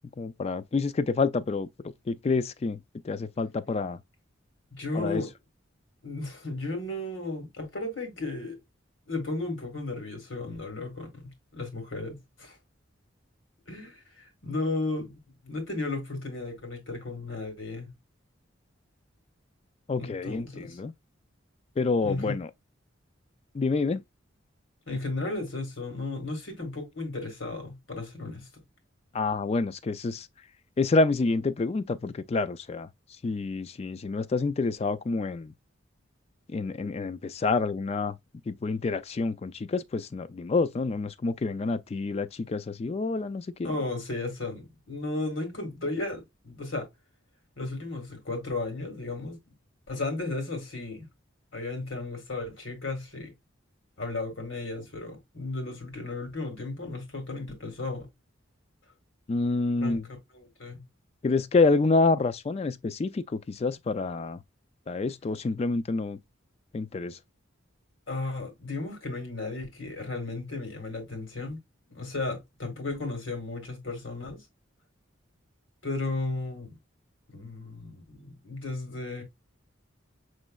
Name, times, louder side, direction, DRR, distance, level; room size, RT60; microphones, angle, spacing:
voice 1, 0.2-1.7 2.1-4.0 4.9-5.2 19.9-20.9 21.8-22.5 23.5-24.0 29.1-30.3 30.8-32.9 33.2-35.5 36.5-38.2 38.5-43.7 59.3-60.0 61.2-64.4 64.9-66.2 66.7-67.2, left 3 dB, 30° left, 0.3 m, -28 dB
voice 2, 4.7-5.3 6.0-8.6 9.1-11.2 11.5-12.6 13.7-17.9 20.0-20.8 22.0-22.4 24.9-28.5 43.6-46.9 47.6-49.4 49.9-51.1 51.5-53.3 54.0-58.1 59.8-60.0 60.3-60.8 68.1-71.6 71.9-74.4 75.8-76.7 77.3-79.2, left 2 dB, 75° left, 1.8 m, -34 dB
6.1 x 3.2 x 2.3 m
head